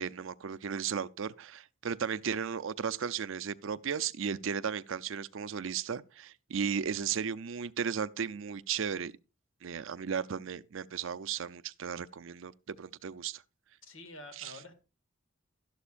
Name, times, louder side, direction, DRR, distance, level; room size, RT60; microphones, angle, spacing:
voice 1, 0.0-9.1 9.6-13.4 14.4-14.6, right 7 dB, 70° right, 0.5 m, -35 dB
voice 2, 13.8-14.8, left 2 dB, 75° left, 2.0 m, -48 dB
12.0 x 11.5 x 2.5 m
head